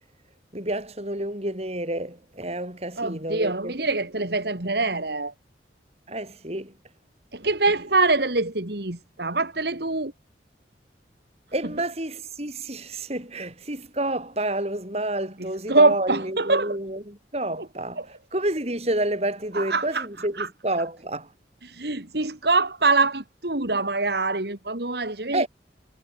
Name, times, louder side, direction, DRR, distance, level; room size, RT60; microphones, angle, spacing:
voice 1, 0.5-3.7 6.1-6.7 11.5-18.0 18.3-21.3 25.3-25.5, right 1 dB, 35° right, 7.4 m, -29 dB
voice 2, 3.0-5.3 7.3-10.1 15.4-16.8 17.6-17.7 18.0-18.1 19.5-20.5 21.6-25.5, right 3 dB, 60° right, 2.4 m, -24 dB
head